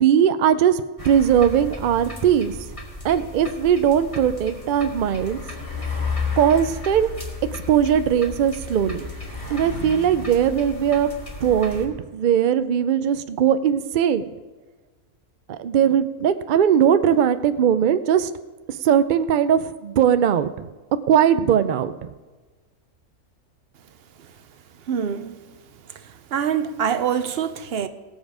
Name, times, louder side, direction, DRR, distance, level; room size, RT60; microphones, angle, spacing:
voice 1, 0.0-2.6 3.0-5.4 6.4-7.1 7.5-9.1 9.5-11.1 11.4-14.2 15.5-18.3 18.8-20.7 21.1-22.1, right 9 dB, 80° right, 0.4 m, -19 dB
sound 1, 1.0-11.9, left 3 dB, 25° left, 1.9 m, -33 dB
voice 2, 24.9-25.4 26.3-27.9, right 8 dB, 55° right, 0.8 m, -24 dB
18.5 x 7.2 x 4.9 m
omnidirectional pair, 1.5 m